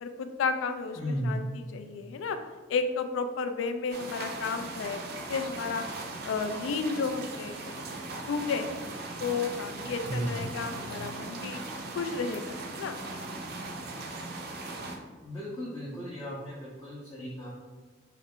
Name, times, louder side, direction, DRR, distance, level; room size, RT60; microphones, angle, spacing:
voice 1, 0.0-2.4 2.7-5.8 6.2-7.9 8.3-8.8 9.2-11.6 12.0-13.0, left 5 dB, 85° left, 8 dB, 0.3 m, -32 dB
voice 2, 1.0-1.4 10.0-10.4 15.2-17.5, equal, 20° left, -7 dB, 0.5 m, -35 dB
sound 1, 3.9-15.0, right 2 dB, 55° right, 0.4 m, -39 dB
3.2 x 2.4 x 3.5 m, 1.4 s
head